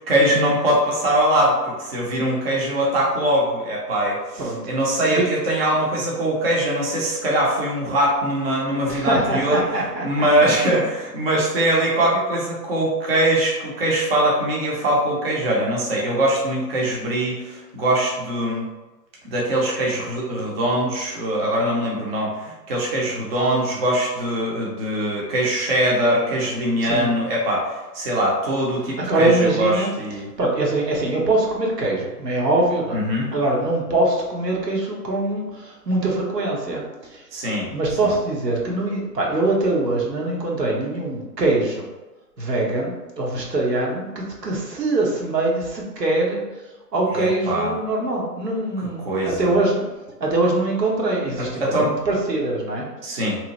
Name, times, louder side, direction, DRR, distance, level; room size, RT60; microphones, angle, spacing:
voice 1, 0.0-9.6 10.0-18.6 19.2-30.3 32.9-33.3 37.3-37.7 38.0-38.1 47.1-47.7 49.0-49.6 51.6-51.9 53.0-53.4, right 1 dB, 40° right, -4 dB, 0.6 m, -22 dB
voice 2, 8.9-10.3 26.8-27.1 29.0-29.9 30.4-37.2 37.7-41.8 42.4-46.4 46.9-49.8 50.2-52.9, right 2 dB, 80° right, -2 dB, 0.9 m, -23 dB
2.8 x 2.1 x 2.8 m, 1.1 s
figure-of-eight pair, 135°, 49 cm